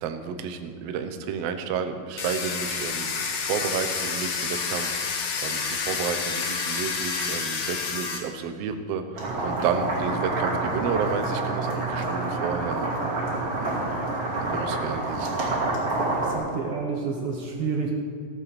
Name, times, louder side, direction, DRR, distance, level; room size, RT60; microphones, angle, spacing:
voice 1, 0.0-3.1 3.4-12.9 13.5-13.9 14.4-15.6, right 6 dB, 85° right, 7 dB, 1.4 m, -31 dB
Domestic sounds home sounds, 2.2-8.2, left 5 dB, 65° left, 2.4 m, -29 dB
sound 1, 9.1-16.4, right 2 dB, 45° right, 3.2 m, -27 dB
voice 2, 16.2-17.9, right 5 dB, 65° right, 1 dB, 1.4 m, -29 dB
15.0 x 7.6 x 6.8 m, 2.2 s
omnidirectional pair, 4.0 m